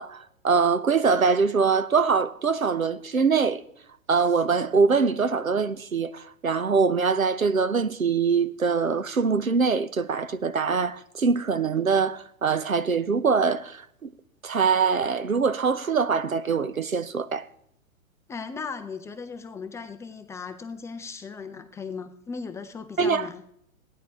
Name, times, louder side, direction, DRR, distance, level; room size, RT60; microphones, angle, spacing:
voice 1, 0.0-3.6 4.1-14.1 14.4-17.5 23.0-23.3, right 5 dB, 90° right, 1.1 m, -23 dB
voice 2, 18.3-23.4, left 5 dB, 5° left, 0.5 m, -37 dB
16.0 x 10.5 x 4.7 m
figure-of-eight pair, 115°, 40 cm